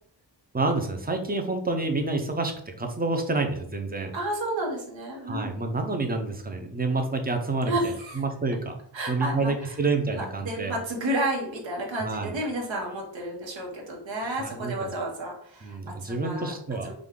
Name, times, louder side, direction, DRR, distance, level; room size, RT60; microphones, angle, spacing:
voice 1, 0.5-2.5 2.8-4.1 5.3-8.8 9.1-10.8 12.0-12.3 14.4-14.9 15.6-16.9, right 3 dB, 20° right, 4 dB, 0.5 m, -28 dB
voice 2, 4.1-5.5 6.9-7.0 7.7-8.2 8.9-9.7 10.2-16.5 16.8-16.9, right 1 dB, 80° right, -1 dB, 1.2 m, -31 dB
5.0 x 2.3 x 3.7 m, 0.63 s
wide cardioid pair, 165°, 45 cm